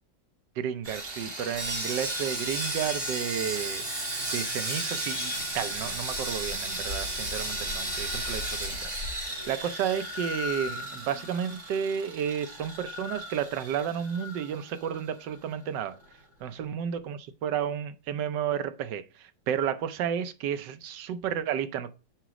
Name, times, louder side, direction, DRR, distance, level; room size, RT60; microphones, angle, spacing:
voice 1, 0.6-3.8 4.3-16.0 16.4-19.0 19.5-21.9, right 8 dB, 80° right, 1.3 m, -32 dB
Sawing, 0.8-15.1 15.3-15.5 16.0-16.1, right 1 dB, 40° right, 4.2 m, -34 dB
6.0 x 4.9 x 4.7 m
omnidirectional pair, 1.9 m